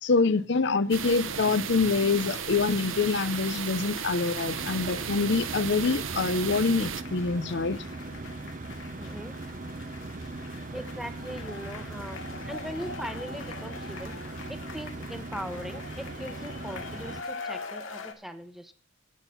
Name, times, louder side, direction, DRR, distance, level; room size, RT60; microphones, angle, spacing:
voice 1, 0.0-7.8, left 4 dB, 60° left, 0.6 m, -25 dB
sound 1, 0.9-7.0, right 7 dB, 85° right, 0.8 m, -35 dB
sound 2, 1.0-18.1, left 4 dB, 85° left, 2.2 m, -44 dB
sound 3, 4.5-17.2, right 2 dB, 40° right, 0.8 m, -39 dB
voice 2, 9.0-9.3 10.7-12.2 12.5-14.1 14.5-18.7, equal, ahead, 0.9 m, -40 dB
11.0 x 9.0 x 5.6 m
head